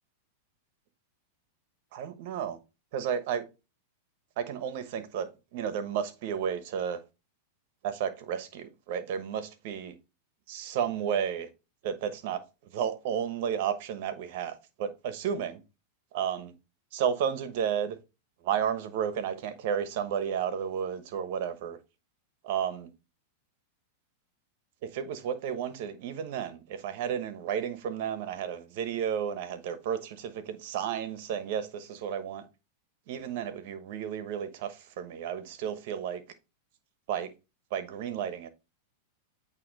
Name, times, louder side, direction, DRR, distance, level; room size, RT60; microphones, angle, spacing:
voice 1, 1.9-2.6 2.9-3.4 4.4-7.0 7.8-9.9 10.5-11.5 11.8-12.4 12.7-15.6 16.1-16.5 16.9-18.0 18.4-21.8 22.4-22.9 24.9-32.4 33.1-36.2 37.1-37.3 37.7-38.5, right 8 dB, 60° right, 1.1 m, -32 dB
8.5 x 2.9 x 4.0 m
hypercardioid pair, 110°, 0 cm